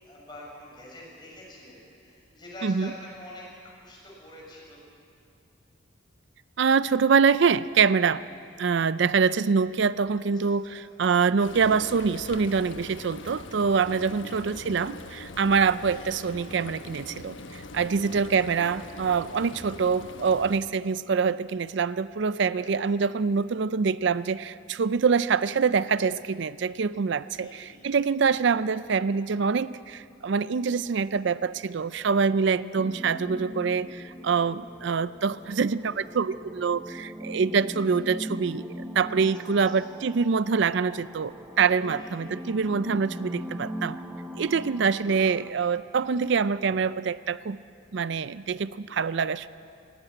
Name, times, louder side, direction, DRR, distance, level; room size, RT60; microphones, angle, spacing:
voice 1, 0.0-3.4 3.8-4.8 10.1-10.8 14.0-14.6 17.9-18.0 22.5-22.7 27.3-27.9 31.9-32.2 39.1-39.2 39.6-39.7 41.8-42.3, left 1 dB, 25° left, -4 dB, 6.5 m, -46 dB
voice 2, 6.6-8.2 8.6-44.0 44.4-47.6 47.9-49.5, right 5 dB, 60° right, 16 dB, 0.4 m, -25 dB
Frying (food), 11.4-20.6, left 2 dB, 70° left, 1.1 m, -42 dB
sound 1, 32.8-45.5, equal, 5° right, 0.8 m, -40 dB
18.0 x 16.5 x 9.9 m, 2.4 s
head